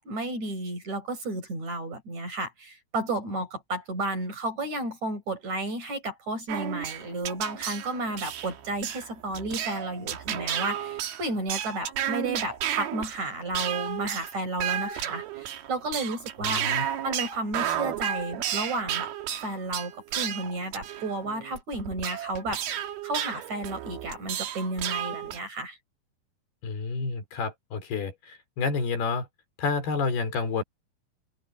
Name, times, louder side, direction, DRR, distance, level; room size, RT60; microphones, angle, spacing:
voice 1, 0.0-16.7 17.0-19.1 19.4-25.8, right 2 dB, 45° right, 7.1 m, -32 dB
sound 1, 6.5-25.4, right 10 dB, 80° right, 3.7 m, -32 dB
voice 2, 16.4-16.9 26.6-29.3 29.6-30.6, left 4 dB, 85° left, 6.2 m, -29 dB
open air
omnidirectional pair, 4.4 m